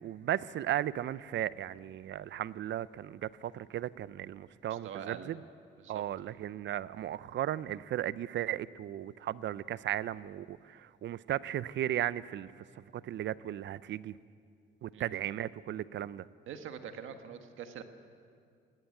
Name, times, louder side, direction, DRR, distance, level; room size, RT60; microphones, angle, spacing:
voice 1, 0.0-5.4 5.9-14.1 14.8-16.3, right 12 dB, 65° right, 18 dB, 0.6 m, -36 dB
voice 2, 4.7-5.3 5.8-6.0 14.9-15.0 16.5-17.8, right 8 dB, 85° right, 7 dB, 1.6 m, -44 dB
18.5 x 18.0 x 9.4 m, 2.3 s
cardioid pair, 90°, 20 cm